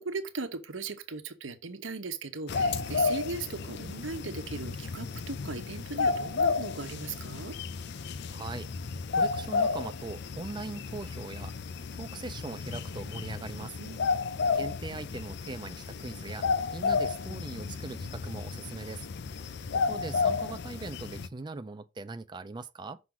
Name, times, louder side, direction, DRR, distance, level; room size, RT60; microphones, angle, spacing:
voice 1, 0.0-7.6 13.8-14.4, right 3 dB, 85° right, 1.0 m, -38 dB
sound 1, 2.5-21.3, left 4 dB, 60° left, 0.5 m, -32 dB
voice 2, 8.2-8.7 9.1-13.8 14.5-19.1 19.7-23.0, right 3 dB, 25° right, 0.4 m, -41 dB
6.0 x 3.9 x 5.8 m
head